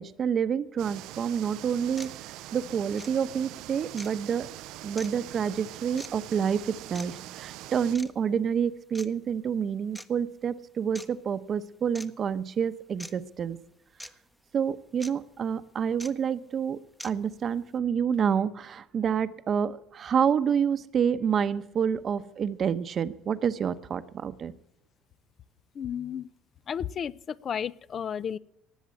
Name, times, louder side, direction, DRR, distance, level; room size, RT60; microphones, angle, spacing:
voice 1, 0.0-2.1 2.5-4.5 4.8-13.6 14.5-24.5, right 7 dB, 40° right, 13 dB, 0.8 m, -28 dB
sound 1, 0.8-8.0, right 16 dB, 75° right, 0.4 m, -43 dB
sound 2, 1.3-1.4 2.0-2.1 2.9-3.1 4.0-4.1 5.0-5.1 6.0-6.1 6.9-7.1 7.9-8.1 8.9-9.1 9.9-10.1 10.9-11.1 11.9-12.1 13.0-13.1 14.0-14.1 15.0-15.1 16.0-16.1 17.0-17.1, equal, 5° left, 0.9 m, -41 dB
voice 2, 25.8-26.3 26.7-28.4, left 8 dB, 40° left, 20 dB, 0.5 m, -33 dB
18.5 x 7.4 x 8.4 m, 0.80 s
cardioid pair, 120°, 0 cm